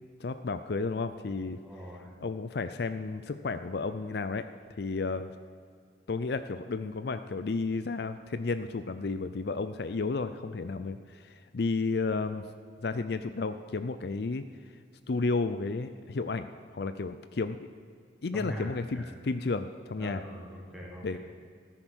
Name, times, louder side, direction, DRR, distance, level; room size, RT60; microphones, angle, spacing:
voice 1, 0.2-1.6 2.2-4.4 4.8-5.3 6.1-12.5 12.8-14.4 15.1-17.7 18.2-20.2 21.0-21.2, left 3 dB, 60° left, 11 dB, 0.5 m, -32 dB
voice 2, 1.6-2.1 18.3-19.0 20.0-21.2, equal, ahead, -4 dB, 3.0 m, -42 dB
14.5 x 9.9 x 6.2 m, 2.2 s
head